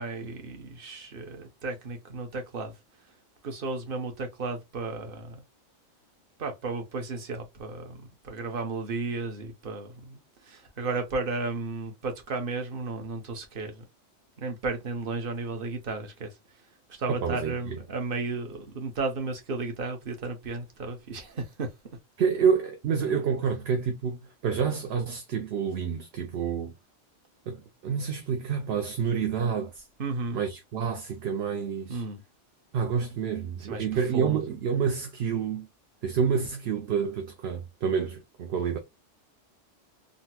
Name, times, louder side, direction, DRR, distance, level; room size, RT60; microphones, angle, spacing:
voice 1, 0.0-2.7 3.4-5.4 6.4-13.8 14.4-16.3 16.9-21.7 30.0-30.4 31.9-32.2 33.6-33.9 34.1-34.4, right 3 dB, 50° right, 1.0 m, -34 dB
voice 2, 17.2-17.8 22.2-26.7 27.5-29.8 30.3-32.0 32.7-35.7 36.0-38.8, right 6 dB, 65° right, 0.8 m, -28 dB
3.9 x 2.1 x 2.8 m
omnidirectional pair, 1.3 m